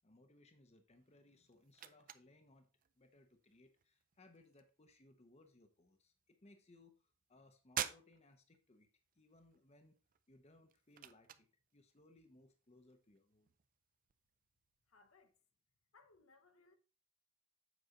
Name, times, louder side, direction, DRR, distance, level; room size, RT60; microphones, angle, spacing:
voice 1, 0.0-2.7 3.0-8.9 9.1-10.0 10.3-11.5 11.7-13.5, left 2 dB, 30° left, 0.8 m, -66 dB
sound 1, 0.9-15.4, right 10 dB, 40° right, 0.5 m, -52 dB
voice 2, 14.9-15.4 15.9-16.7, left 3 dB, 70° left, 1.1 m, -67 dB
8.1 x 5.6 x 3.7 m
head